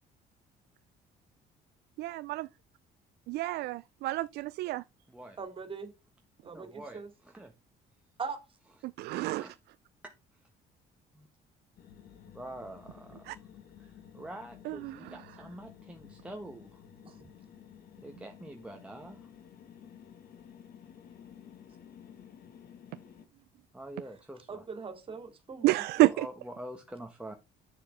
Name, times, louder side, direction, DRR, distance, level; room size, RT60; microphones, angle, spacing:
voice 1, 2.0-2.5 3.3-4.8 8.8-9.5 13.3-13.4 14.7-15.1 25.6-26.3, right 17 dB, 75° right, 0.4 m, -29 dB
voice 2, 5.4-5.9 6.4-7.1 8.2-8.4 17.0-17.3 24.5-26.1, right 5 dB, 30° right, 2.6 m, -41 dB
voice 3, 6.5-7.5 9.0-9.5 10.0-10.1 11.1-11.3 12.3-13.4 13.8-16.8 18.0-19.3 23.7-24.6 26.1-27.3, right 1 dB, 5° right, 1.2 m, -46 dB
sound 1, 11.8-23.2, left 8 dB, 60° left, 1.6 m, -53 dB
9.5 x 6.7 x 3.4 m
cardioid pair, 110°, 17 cm